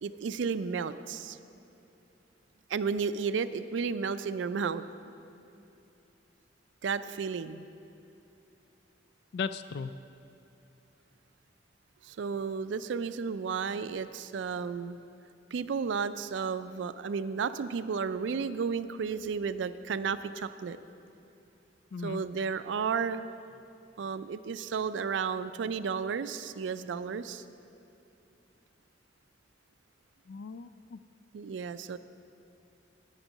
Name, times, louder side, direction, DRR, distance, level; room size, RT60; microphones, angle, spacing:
voice 1, 0.0-1.4 2.7-4.8 6.8-7.7 12.0-15.0 15.5-20.8 22.0-23.2 24.0-27.4 31.3-32.0, right 5 dB, 85° right, 13 dB, 0.4 m, -33 dB
voice 2, 9.3-9.9 21.9-22.2 30.3-31.0, left 5 dB, 65° left, 13 dB, 0.3 m, -36 dB
9.3 x 9.0 x 6.4 m, 2.8 s
head